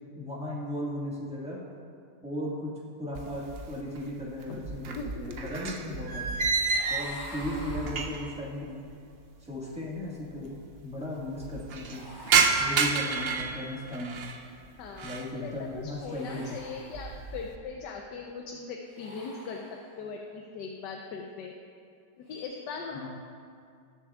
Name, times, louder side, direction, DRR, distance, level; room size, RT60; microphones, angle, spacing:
voice 1, 0.1-1.6 2.2-2.7 3.0-6.5 6.9-8.8 9.4-10.6 10.8-12.0 12.6-14.3 15.0-16.6 22.9-23.1, left 1 dB, 5° right, -5 dB, 1.5 m, -36 dB
sound 1, 3.1-4.0 4.3-8.4 8.7-8.8 9.6-9.7 9.9-10.0 10.3-10.8 11.2-14.4 14.8-15.3 15.8-16.2 16.6-17.5, right 5 dB, 75° right, 0.5 m, -30 dB
sound 2, 6.4-8.6 11.8-13.5 15.9-17.4 18.8-20.2 22.2-22.4, equal, 25° left, 2.2 m, -48 dB
voice 2, 14.8-15.1 15.4-19.6 20.0-21.5 22.2-23.1, left 5 dB, 75° left, 1 dB, 1.3 m, -39 dB
19.0 x 6.9 x 2.4 m, 2.3 s
omnidirectional pair, 1.9 m